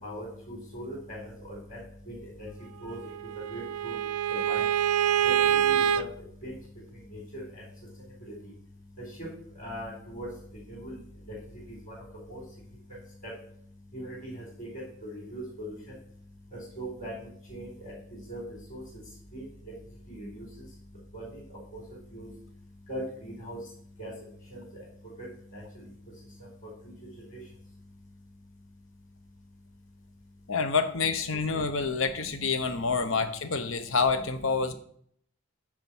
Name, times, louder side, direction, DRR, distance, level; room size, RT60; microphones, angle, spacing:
voice 1, 0.0-1.8 2.4-2.5 2.8-3.0 3.5-4.0 4.3-4.6 5.2-5.3 5.7-6.0 6.4-6.5 7.3-7.4 8.2-8.3 9.6-10.3 10.7-11.0 11.7-11.9 12.3-12.4 13.9-14.7 15.0-15.7 16.8-17.1 17.5-17.9 18.3-18.4 18.7-18.8 19.3-19.4 20.1-20.4 21.1-21.2 21.7-21.8 22.1-22.3 22.9-23.6 24.0-24.1 24.5-24.6 25.2-25.3 25.5-25.6, right 1 dB, 35° left, -4 dB, 4.1 m, -39 dB
Bowed string instrument, 2.9-6.0, right 9 dB, 80° right, 0.4 m, -26 dB
voice 2, 30.5-34.7, left 4 dB, 65° left, 10 dB, 0.9 m, -27 dB
9.6 x 4.6 x 6.2 m, 0.63 s
head